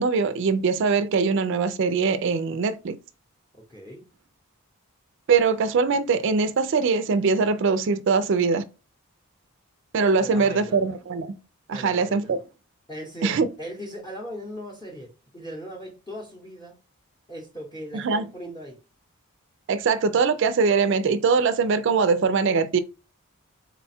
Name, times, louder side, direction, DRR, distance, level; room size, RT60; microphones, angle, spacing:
voice 1, 0.0-3.0 5.3-8.6 9.9-11.3 11.7-12.4 13.2-13.5 17.9-18.3 19.7-22.8, right 5 dB, 55° right, 0.3 m, -22 dB
voice 2, 3.5-4.0 10.2-10.8 11.7-12.4 12.9-16.8 17.3-18.8, equal, 20° left, 0.7 m, -39 dB
4.0 x 2.2 x 4.2 m
head